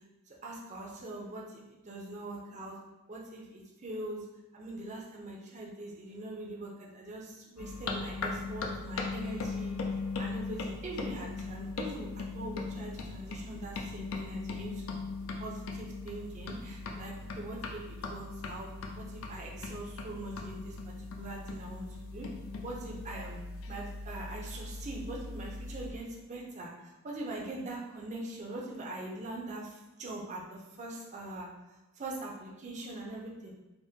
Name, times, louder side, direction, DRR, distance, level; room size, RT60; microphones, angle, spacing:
voice 1, 0.3-2.8 3.1-4.2 4.5-9.7 10.2-14.9 15.4-18.7 19.0-21.9 22.1-22.3 22.6-23.4 23.7-31.5 32.0-33.5, right 2 dB, 35° right, -2 dB, 0.5 m, -42 dB
sound 1, 7.6-25.9, left 3 dB, 75° left, 0.4 m, -39 dB
3.4 x 2.1 x 2.7 m, 1.0 s
head